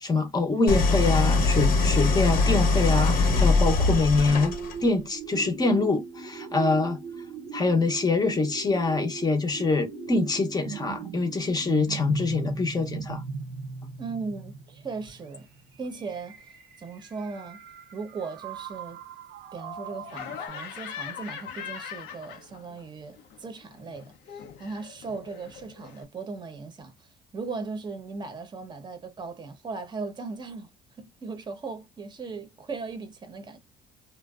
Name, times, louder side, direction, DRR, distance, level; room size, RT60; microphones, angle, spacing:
voice 1, 0.0-4.5 4.8-7.0 7.5-13.2, left 3 dB, 25° left, 0.6 m, -25 dB
Idling, 0.7-4.9, left 3 dB, 60° left, 0.9 m, -22 dB
sound 1, 4.3-20.5, right 5 dB, 75° right, 0.6 m, -39 dB
voice 2, 14.0-15.5 15.8-16.4 16.8-17.6 17.9-19.0 19.5-27.1 27.3-30.7 31.0-33.6, right 4 dB, 25° right, 0.7 m, -38 dB
Laughter, 20.1-22.8 23.1-26.0, left 8 dB, 90° left, 0.6 m, -41 dB
2.5 x 2.1 x 2.3 m
cardioid pair, 110°, 17 cm